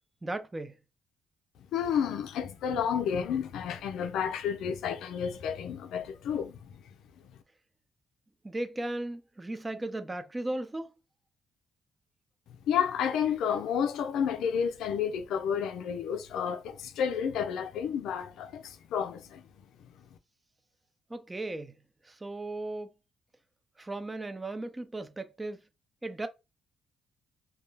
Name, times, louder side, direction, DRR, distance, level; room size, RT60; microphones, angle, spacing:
voice 1, 0.2-0.7 8.4-10.9 21.1-21.7 22.2-22.9 23.8-25.6 26.0-26.3, right 2 dB, 20° right, 0.4 m, -36 dB
voice 2, 1.7-6.6 12.7-19.4, left 8 dB, 80° left, 0.4 m, -31 dB
2.2 x 2.1 x 3.2 m
cardioid pair, 90°, 0 cm